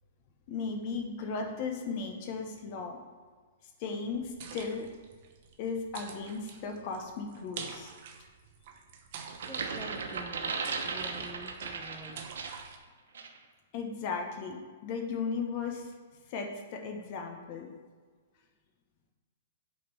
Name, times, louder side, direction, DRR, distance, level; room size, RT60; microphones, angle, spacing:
voice 1, 0.5-3.0 3.8-4.9 5.6-7.9 13.7-15.9 16.3-17.7, left 5 dB, 40° left, 3 dB, 1.3 m, -36 dB
sound 1, 4.1-12.8, right 6 dB, 45° right, 0.9 m, -48 dB
sound 2, 9.3-12.7 13.1-13.4, right 4 dB, 85° right, 1.0 m, -36 dB
voice 2, 9.5-12.3, right 2 dB, 5° right, 3 dB, 0.4 m, -48 dB
8.7 x 4.3 x 5.4 m, 1.5 s
hypercardioid pair, 160°, 0 cm